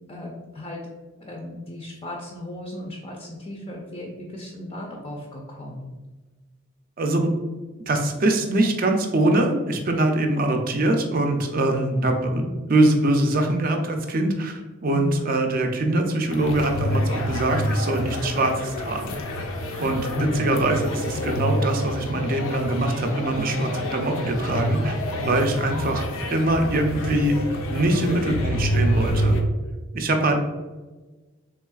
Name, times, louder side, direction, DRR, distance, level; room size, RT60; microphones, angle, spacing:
voice 1, 0.1-0.8 1.2-6.0 14.9-15.2 20.2-20.7, left 1 dB, 25° left, -1 dB, 0.4 m, -35 dB
voice 2, 7.0-7.3 7.9-19.1 19.8-25.0 25.2-29.4 29.9-30.4, right 1 dB, 45° right, 4 dB, 0.4 m, -23 dB
sound 1, 16.3-29.4, equal, 85° left, 0.5 m, -27 dB
3.5 x 3.2 x 2.3 m, 1.2 s
head